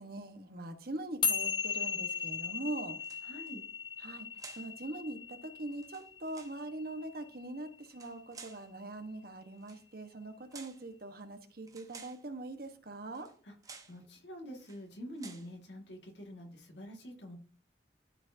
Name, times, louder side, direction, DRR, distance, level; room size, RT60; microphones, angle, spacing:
voice 1, 0.0-2.9 4.0-13.3, right 2 dB, 55° right, 6 dB, 1.2 m, -42 dB
sound 1, 1.2-7.8, left 5 dB, 25° left, 0.7 m, -37 dB
sound 2, 3.0-3.5 4.4-4.7 5.7-6.6 7.8-8.7 9.6-9.8 10.5-10.9 11.7-12.2 13.1-13.4 13.6-14.0 14.6-14.8 15.2-15.5, right 5 dB, 20° right, 0.9 m, -52 dB
voice 2, 3.2-3.6 13.4-13.6 13.9-17.4, equal, 80° left, 2 dB, 2.0 m, -46 dB
13.0 x 4.5 x 2.7 m, 0.43 s
head